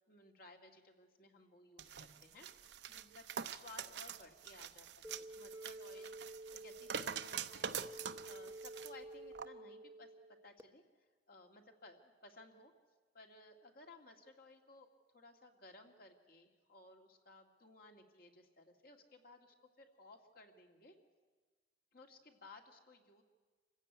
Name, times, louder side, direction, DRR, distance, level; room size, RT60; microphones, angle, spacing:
voice 1, 0.1-2.5 2.9-3.2 3.5-7.7 8.2-10.1 10.4-10.8 11.3-12.7 13.1-14.9 15.1-21.0 21.9-23.2, left 2 dB, 55° left, 3 dB, 2.4 m, -59 dB
sound 1, 1.8-8.9 9.4-9.5, right 7 dB, 75° right, 0.8 m, -45 dB
sound 2, 5.0-10.6, right 1 dB, 15° right, 0.8 m, -51 dB
27.0 x 15.5 x 9.4 m, 1.4 s
head